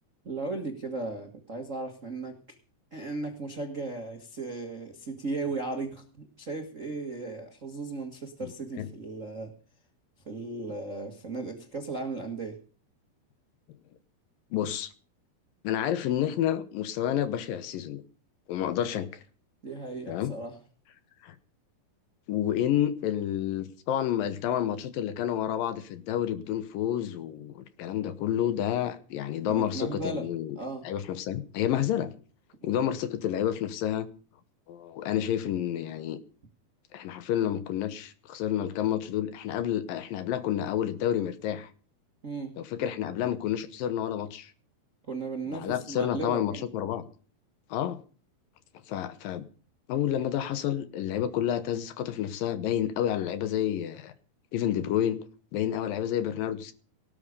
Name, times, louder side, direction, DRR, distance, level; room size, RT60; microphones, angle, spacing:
voice 1, 0.2-2.4 2.9-9.5 10.2-12.6 19.6-20.5 29.5-30.3 30.6-30.8 32.6-32.9 42.2-42.5 45.0-46.7, right 3 dB, 80° right, 4 dB, 0.7 m, -36 dB
voice 2, 14.5-14.9 15.6-18.0 18.5-19.1 20.1-20.3 21.2-21.4 22.3-30.6 30.8-32.1 32.6-34.1 34.7-36.2 36.9-41.7 42.6-44.5 45.5-47.1 47.7-48.0 48.9-49.5 49.9-54.1 54.5-55.3 55.5-56.7, left 10 dB, 70° left, 14 dB, 2.4 m, -29 dB
18.0 x 8.7 x 6.7 m, 0.40 s
omnidirectional pair, 4.7 m